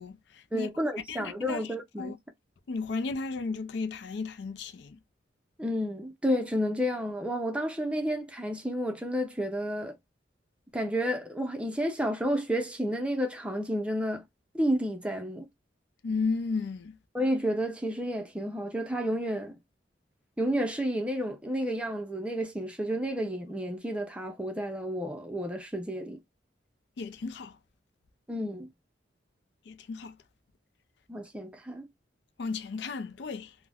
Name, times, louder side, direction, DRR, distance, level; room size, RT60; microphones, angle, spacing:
voice 1, 0.0-0.7 1.1-2.2 2.7-5.0 16.0-17.0 27.0-27.6 29.7-30.2 32.4-33.6, left 4 dB, 65° left, 0.4 m, -34 dB
voice 2, 0.5-2.1 5.6-9.9 10.7-14.2 14.5-15.5 17.1-19.6 20.4-26.2 28.3-28.7 31.1-31.9, equal, 5° right, 0.5 m, -31 dB
2.4 x 2.1 x 3.3 m
head